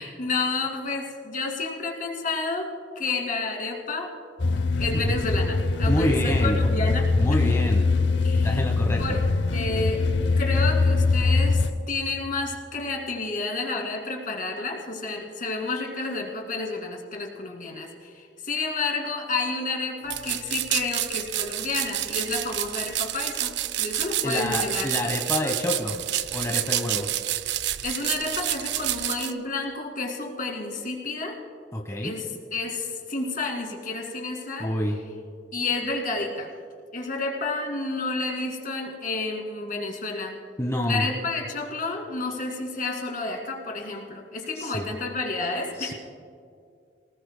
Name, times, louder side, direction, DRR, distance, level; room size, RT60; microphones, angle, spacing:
voice 1, 0.0-2.7 3.0-4.1 4.8-7.1 8.2-8.6 9.0-9.2 9.5-10.1 10.4-24.9 27.8-31.4 32.0-32.3 32.5-34.7 35.5-36.5 36.9-40.4 40.8-45.9, left 3 dB, 50° left, 1 dB, 2.2 m, -30 dB
sound 1, 4.4-11.7, left 3 dB, 85° left, 0.7 m, -23 dB
voice 2, 5.9-6.6 7.1-7.9 8.3-9.2 24.2-26.0 26.3-27.1 31.7-32.1 34.6-35.0 40.6-41.1 44.5-44.9 45.8-45.9, left 1 dB, 15° left, 0 dB, 1.1 m, -27 dB
sound 2, 20.1-29.3, right 13 dB, 70° right, 0.4 m, -29 dB
25.0 x 18.5 x 2.2 m, 2.3 s
head